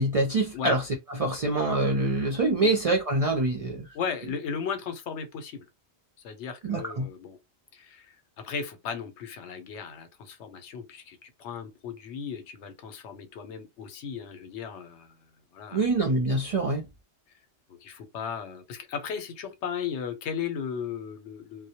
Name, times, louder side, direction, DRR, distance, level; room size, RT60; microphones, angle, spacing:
voice 1, 0.0-3.9 6.6-7.1 15.7-16.9, right 2 dB, 55° right, 0.4 m, -25 dB
voice 2, 3.9-5.6 6.2-7.4 7.7-15.1 15.5-15.8 17.7-21.7, left 7 dB, 85° left, 0.9 m, -36 dB
2.1 x 2.0 x 2.8 m
omnidirectional pair, 1.2 m